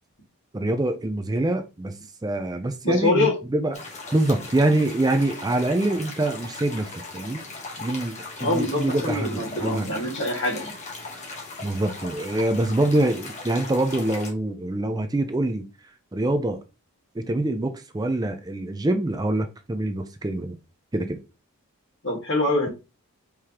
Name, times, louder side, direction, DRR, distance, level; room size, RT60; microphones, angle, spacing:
voice 1, 0.5-2.0 2.2-3.8 4.1-7.4 7.8-9.9 11.6-15.6 16.1-16.6 17.1-20.6 20.9-21.2, right 1 dB, 15° right, 0.4 m, -25 dB
voice 2, 2.8-3.3 8.4-10.7 22.0-22.7, left 2 dB, 55° left, 1.8 m, -24 dB
sound 1, 3.7-14.3, left 3 dB, 30° left, 1.1 m, -39 dB
4.7 x 3.6 x 2.9 m
head